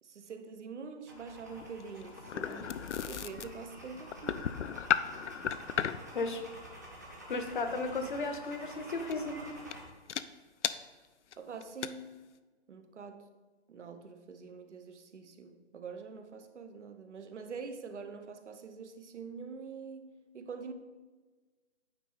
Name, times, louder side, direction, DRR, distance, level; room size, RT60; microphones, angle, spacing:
voice 1, 0.0-4.4 11.4-12.1 12.7-13.3 13.7-20.7, right 5 dB, 75° right, 8 dB, 1.0 m, -45 dB
sound 1, 1.1-9.8, right 1 dB, 15° right, 0.5 m, -49 dB
sound 2, 1.5-6.1 8.3-8.6 9.1-9.3 9.7-9.8 10.1-10.2 10.6-10.7 11.3-11.4 11.6-11.9, left 9 dB, 80° left, 0.5 m, -34 dB
voice 2, 7.3-9.4, left 3 dB, 45° left, 7 dB, 0.8 m, -34 dB
9.2 x 4.5 x 3.9 m, 1.3 s
hypercardioid pair, 165°, 35 cm